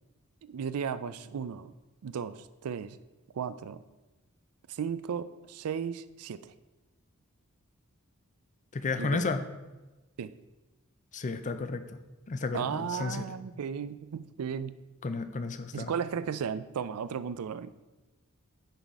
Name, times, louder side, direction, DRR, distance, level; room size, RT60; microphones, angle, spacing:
voice 1, 0.4-1.7 2.0-3.0 3.3-3.8 4.7-6.5 9.0-9.2 10.2-10.3 12.5-14.8 15.7-17.8, right 7 dB, 85° right, 14 dB, 0.4 m, -35 dB
voice 2, 8.7-9.4 11.1-12.0 12.3-13.2 15.0-16.0, left 3 dB, 35° left, 10 dB, 0.5 m, -32 dB
10.0 x 4.0 x 4.6 m, 1.1 s
head